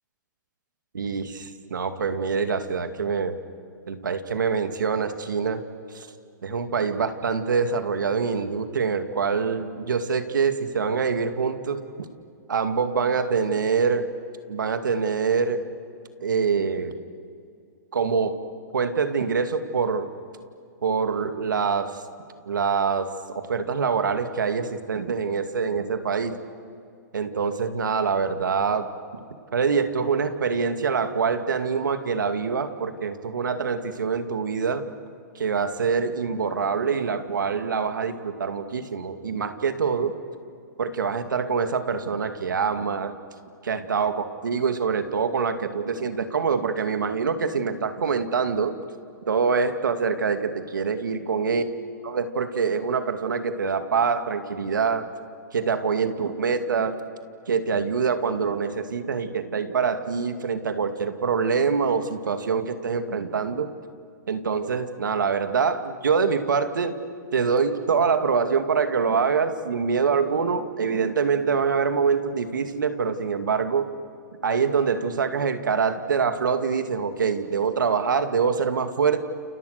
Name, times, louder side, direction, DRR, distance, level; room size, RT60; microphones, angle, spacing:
voice 1, 0.9-3.4 3.9-5.6 5.9-6.1 6.4-11.8 12.5-14.1 14.5-15.6 16.2-17.0 17.9-18.4 18.7-20.1 20.8-22.0 22.5-26.4 27.1-29.2 29.5-34.8 35.3-40.2 40.8-43.1 43.6-48.8 49.3-51.7 52.0-55.1 55.5-57.0 57.5-63.7 64.3-67.0 67.3-73.9 74.4-79.2, right 5 dB, 90° right, 8 dB, 2.3 m, -25 dB
30.0 x 29.5 x 6.7 m, 2.4 s
hypercardioid pair, 140°, 10 cm